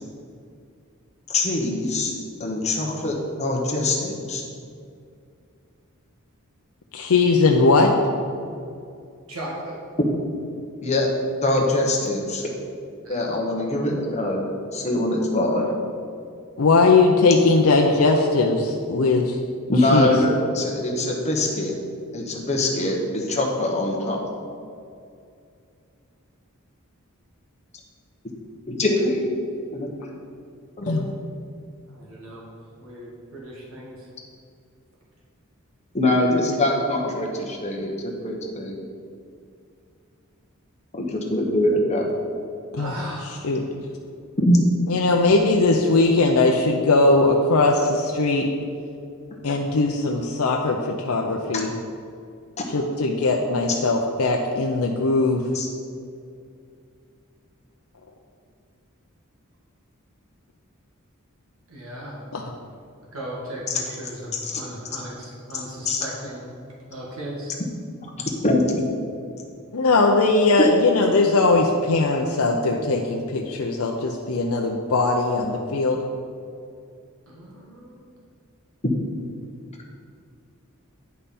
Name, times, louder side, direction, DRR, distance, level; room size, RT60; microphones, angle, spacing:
voice 1, 1.3-2.1 2.4-4.4 10.0-10.1 10.8-11.1 11.4-12.5 13.1-14.4 14.7-15.7 19.7-21.7 22.1-24.2 28.7-29.3 29.7-29.9 30.8-30.9 35.9-38.8 40.9-42.1 44.4-44.6 55.5-55.7 64.3-64.6 65.8-66.0 68.4-68.8, left 1 dB, 30° left, 0 dB, 1.2 m, -23 dB
voice 2, 6.9-7.9 16.6-19.4 19.9-20.1 30.8-31.1 42.7-42.9 43.4-43.6 44.9-48.5 49.4-51.7 52.7-55.4 62.3-62.4 69.7-76.0, left 3 dB, 80° left, 1 dB, 0.6 m, -19 dB
voice 3, 9.3-9.8 13.0-13.3 31.8-32.4 32.8-34.1 42.7-43.5 61.7-62.2 63.1-66.6 66.9-67.6 77.3-78.0, right 1 dB, 75° right, -4 dB, 1.6 m, -36 dB
9.6 x 5.5 x 4.2 m, 2.4 s
head